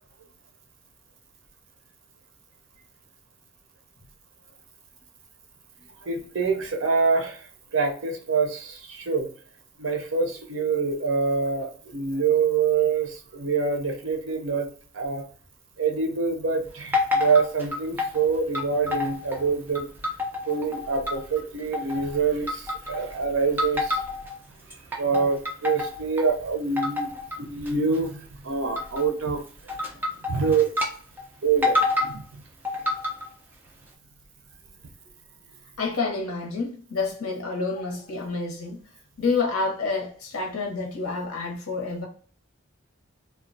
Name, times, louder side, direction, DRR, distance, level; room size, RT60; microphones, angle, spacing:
voice 1, 6.0-9.3 9.8-14.7 14.9-15.2 15.8-19.9 20.5-24.0 24.7-29.4 30.2-30.7 31.4-32.4, right 5 dB, 60° right, 0.6 m, -26 dB
sound 1, 16.9-18.2 18.5-19.4 19.7-21.4 21.7-22.1 22.5-23.1 23.6-24.3 24.7-26.3 26.8-27.3 27.7-28.0 28.8-29.1 29.7-30.9 31.2-31.3 31.6-32.1 32.6-33.3, left 2 dB, 10° right, 0.4 m, -27 dB
voice 2, 35.8-38.8 39.2-42.1, left 4 dB, 90° left, 0.8 m, -28 dB
2.3 x 2.2 x 2.5 m
head